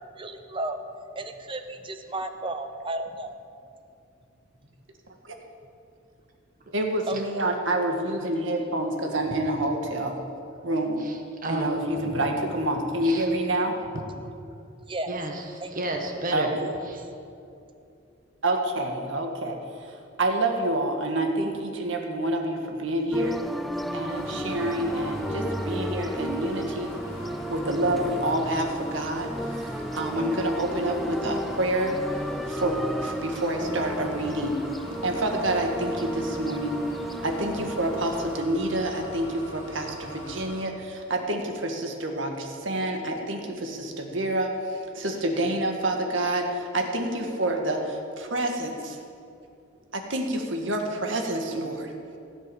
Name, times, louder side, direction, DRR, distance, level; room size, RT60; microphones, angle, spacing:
voice 1, 0.1-0.8 1.2-3.4 7.1-7.2 14.9-15.2 15.6-15.7 16.6-16.8, right 2 dB, 25° right, 8 dB, 0.8 m, -33 dB
voice 2, 6.7-10.1 10.6-11.0 11.5-13.8 16.3-16.7 18.4-19.6 19.8-23.4 23.9-27.0 27.5-32.0 32.5-34.6 35.0-36.8 37.2-49.0 49.9-51.9, right 1 dB, 70° right, 3 dB, 1.7 m, -28 dB
voice 3, 11.0-12.4 13.0-13.3 15.1-17.0, right 1 dB, 45° right, 2 dB, 1.6 m, -33 dB
sound 1, 23.1-38.4, equal, ahead, 0.3 m, -34 dB
sound 2, 24.1-40.6, equal, 85° left, 2.6 m, -42 dB
16.0 x 8.2 x 7.0 m, 2.6 s
head